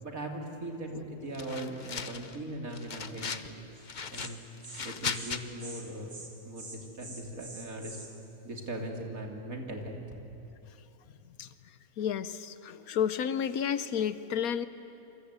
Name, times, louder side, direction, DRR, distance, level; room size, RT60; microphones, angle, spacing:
voice 1, 0.0-3.6 4.1-4.4 4.8-6.2 6.4-8.0 8.4-10.0, right 1 dB, 65° right, 2 dB, 3.3 m, -39 dB
sound 1, 1.3-2.4 2.7-3.5 3.8-5.4, left 6 dB, 40° left, 0.8 m, -37 dB
Insect, 3.7-3.9 4.1-4.3 4.6-4.8 5.1-5.3 5.6-5.8 6.1-6.3 6.6-8.1, right 3 dB, 90° right, 3.9 m, -45 dB
voice 2, 12.0-14.7, left 8 dB, 75° left, 13 dB, 1.2 m, -31 dB
27.5 x 24.5 x 8.1 m, 2.9 s
omnidirectional pair, 1.5 m